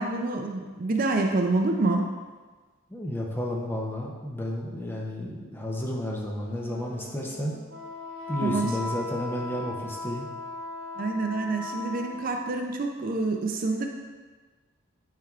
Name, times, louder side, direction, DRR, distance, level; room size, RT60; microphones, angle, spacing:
voice 1, 0.0-2.0 8.4-8.7 11.0-13.9, right 3 dB, 40° right, 3 dB, 0.4 m, -27 dB
voice 2, 2.9-7.6 8.3-10.3, left 1 dB, 10° left, -2 dB, 0.6 m, -32 dB
Wind instrument woodwind instrument, 6.3-12.5, left 2 dB, 85° right, 1.0 m, -38 dB
9.0 x 4.5 x 2.4 m, 1.3 s
head